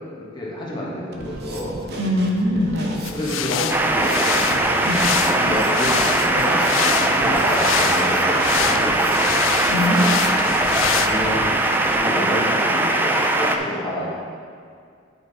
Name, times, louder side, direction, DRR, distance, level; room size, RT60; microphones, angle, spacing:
voice 1, 0.1-2.0 2.9-4.6 5.3-9.1 11.0-11.5 11.9-14.1, left 1 dB, 25° left, -4 dB, 1.5 m, -29 dB
Drum kit, 1.1-12.0, right 1 dB, 55° right, 0.8 m, -35 dB
voice 2, 2.0-2.9 4.9-5.0 9.7-10.0, left 1 dB, 80° right, -6 dB, 1.8 m, -21 dB
sound 1, 3.0-11.1, left 10 dB, 75° left, 0.4 m, -27 dB
sound 2, 3.7-13.6, right 1 dB, 10° right, 0.4 m, -20 dB
9.2 x 5.5 x 4.2 m, 2.2 s
head